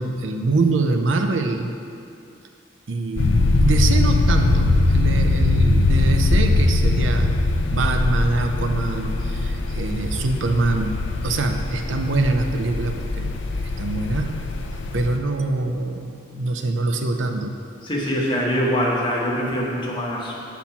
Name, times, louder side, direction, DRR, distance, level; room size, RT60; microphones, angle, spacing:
voice 1, 0.0-1.7 2.9-7.3 7.7-11.0 11.2-13.3 13.8-14.3 14.9-17.5, right 3 dB, 80° right, 5 dB, 0.5 m, -24 dB
sound 1, 3.2-15.2, left 2 dB, 70° left, 0.5 m, -21 dB
voice 2, 17.8-20.4, equal, 25° left, -5 dB, 1.1 m, -23 dB
7.3 x 4.2 x 5.6 m, 2.5 s
head